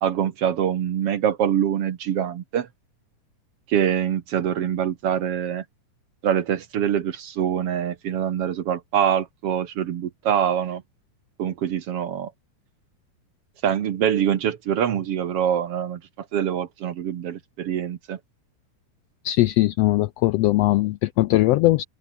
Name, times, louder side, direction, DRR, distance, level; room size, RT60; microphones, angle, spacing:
voice 1, 0.0-2.7 3.7-5.6 6.2-10.8 11.4-12.3 13.6-16.0 16.3-18.2, right 9 dB, 60° right, 1.9 m, -24 dB
voice 2, 19.2-21.8, left 17 dB, 90° left, 1.4 m, -20 dB
open air
omnidirectional pair, 3.5 m